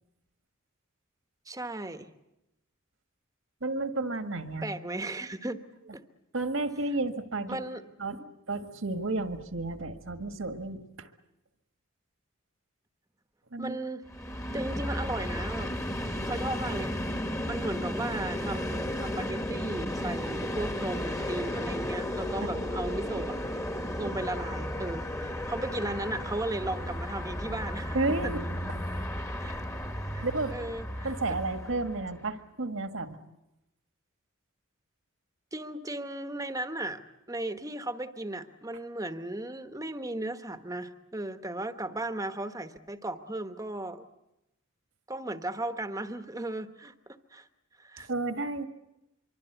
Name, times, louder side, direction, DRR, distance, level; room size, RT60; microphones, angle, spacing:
voice 1, 1.5-2.1 4.6-5.6 5.9-6.0 7.5-7.8 8.1-8.2 13.6-14.0 14.5-15.8 16.2-17.0 17.4-23.3 24.0-28.0 28.2-28.3 29.4-29.6 30.1-31.4 35.5-37.0 37.3-44.0 45.1-47.5 47.8-48.1, right 1 dB, 15° right, 9 dB, 1.1 m, -36 dB
voice 2, 3.6-4.7 6.3-7.6 8.0-8.2 8.5-11.1 13.5-13.8 22.4-22.7 27.9-28.5 30.2-30.5 31.0-33.2 48.0-48.7, right 2 dB, 65° right, 8 dB, 1.7 m, -32 dB
Train, 14.1-32.2, left 1 dB, 15° left, 1.4 m, -34 dB
24.5 x 24.0 x 8.1 m, 0.92 s
head